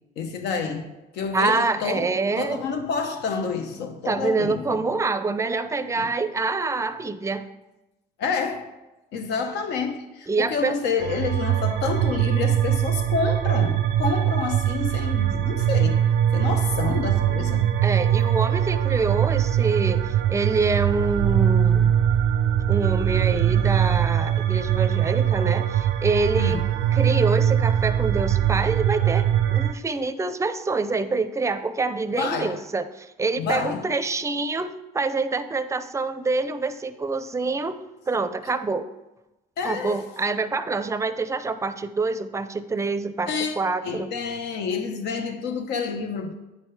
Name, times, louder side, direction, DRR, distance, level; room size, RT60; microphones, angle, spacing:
voice 1, 0.2-2.1 2.4-4.9 6.0-6.1 8.2-8.7 9.1-17.8 26.4-26.6 32.2-32.6 33.4-33.9 39.6-40.1 43.3-43.6 43.8-46.3, left 5 dB, 80° left, 1.2 m, -28 dB
voice 2, 1.3-2.6 4.1-7.5 10.3-10.7 17.8-21.9 22.7-26.6 26.9-37.8 38.1-38.9 39.6-44.1, right 3 dB, 15° right, 0.5 m, -26 dB
sound 1, 11.0-29.7, right 10 dB, 90° right, 0.5 m, -22 dB
9.2 x 5.5 x 4.8 m
cardioid pair, 110°, 17 cm